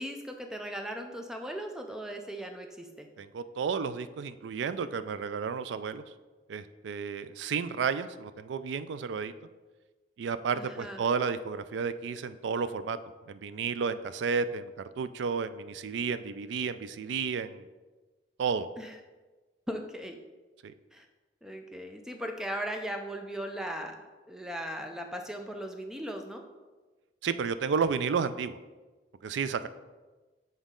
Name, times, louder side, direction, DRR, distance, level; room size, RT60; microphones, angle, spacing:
voice 1, 0.0-3.1 10.5-11.0 18.8-18.9 19.7-20.2 20.9-21.1 21.4-24.0 24.3-26.4, equal, 5° right, 4 dB, 0.4 m, -38 dB
voice 2, 3.2-6.0 6.5-9.3 10.2-13.0 13.3-17.7 18.4-18.7 20.6-20.7 27.2-28.6 29.2-29.7, right 5 dB, 75° right, 13 dB, 0.3 m, -32 dB
7.3 x 4.0 x 3.7 m, 1.3 s
head